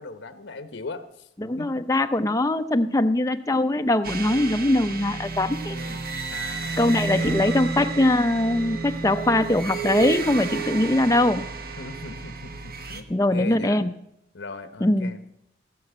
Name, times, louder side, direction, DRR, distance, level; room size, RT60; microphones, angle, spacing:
voice 1, 0.0-1.3 1.6-2.0 5.7-6.0 6.3-7.4 11.8-13.8 14.3-15.4, left 3 dB, 70° left, 10 dB, 1.1 m, -39 dB
voice 2, 1.4-5.8 6.8-11.5 13.1-13.9 14.8-15.1, left 1 dB, 15° left, 8 dB, 0.5 m, -22 dB
sound 1, 4.0-13.0, right 4 dB, 50° right, 1.1 m, -31 dB
17.5 x 5.8 x 8.0 m, 0.81 s
head